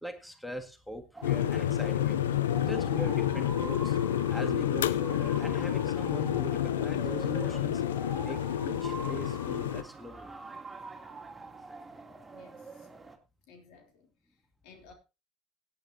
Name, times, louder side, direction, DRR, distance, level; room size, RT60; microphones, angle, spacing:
voice 1, 0.0-2.2 2.7-4.0 4.3-7.8 8.2-10.3, equal, ahead, 1.9 m, -41 dB
sound 1, 1.1-13.2, right 4 dB, 15° right, 2.9 m, -45 dB
sound 2, 1.2-9.8, left 11 dB, 85° left, 0.6 m, -29 dB
voice 2, 12.3-12.9 13.5-14.1 14.6-14.9, left 5 dB, 70° left, 3.3 m, -56 dB
17.0 x 9.5 x 2.8 m
hypercardioid pair, 75°, 0 cm